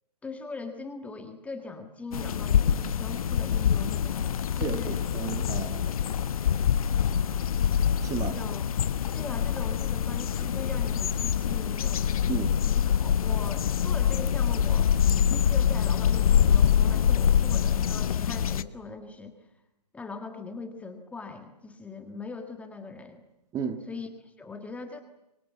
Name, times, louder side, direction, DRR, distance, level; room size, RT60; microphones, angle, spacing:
voice 1, 0.2-5.0 8.2-8.7 9.1-12.1 12.7-19.3 19.9-23.2 23.9-25.0, left 4 dB, 5° left, 6 dB, 1.5 m, -41 dB
sound 1, 2.1-18.6, left 8 dB, 60° left, 1.2 m, -25 dB
voice 2, 4.6-5.9 8.0-8.4 12.3-12.5 23.5-23.9, right 6 dB, 15° right, 9 dB, 1.7 m, -33 dB
26.5 x 24.0 x 8.3 m, 0.89 s
hypercardioid pair, 145°, 21 cm